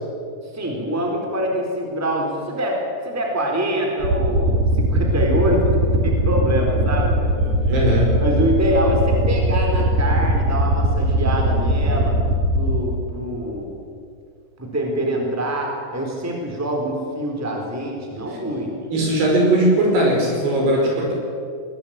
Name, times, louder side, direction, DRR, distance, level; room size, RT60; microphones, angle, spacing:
voice 1, 0.5-7.4 8.2-12.2 12.6-13.7 14.6-18.7, equal, 5° right, 0 dB, 3.6 m, -24 dB
sound 1, 4.0-12.8, right 1 dB, 55° right, 3.5 m, -20 dB
voice 2, 7.4-8.2 18.9-21.1, right 1 dB, 70° right, 0 dB, 7.4 m, -19 dB
21.5 x 19.5 x 9.0 m, 2.3 s
omnidirectional pair, 5.0 m